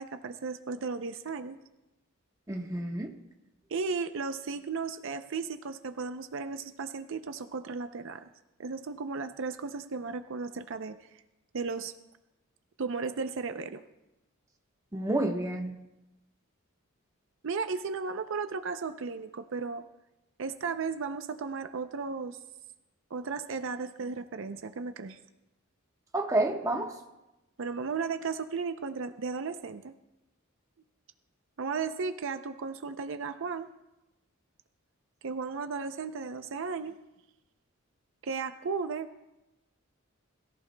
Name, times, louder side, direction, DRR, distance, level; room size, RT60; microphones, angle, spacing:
voice 1, 0.0-1.6 3.7-8.2 8.6-11.1 11.5-11.9 12.8-13.8 17.4-19.8 20.4-22.4 23.1-25.2 27.6-29.9 31.6-33.7 35.2-37.0 38.2-39.2, right 4 dB, 65° right, 9 dB, 0.5 m, -35 dB
voice 2, 2.5-3.1 14.9-15.7 26.1-26.9, right 2 dB, 15° right, 2 dB, 1.1 m, -29 dB
21.5 x 14.5 x 2.2 m, 0.97 s
head